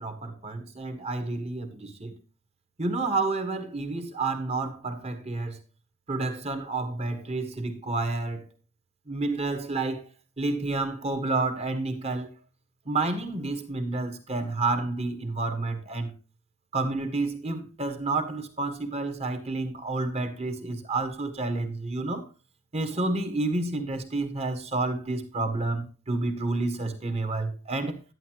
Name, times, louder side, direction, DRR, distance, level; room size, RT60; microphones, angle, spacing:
voice 1, 0.0-2.2 2.8-5.6 6.1-8.5 9.1-10.1 10.4-12.3 12.8-16.1 16.7-22.3 22.7-28.0, right 3 dB, 30° right, 1.5 m, -30 dB
11.0 x 9.9 x 3.0 m
head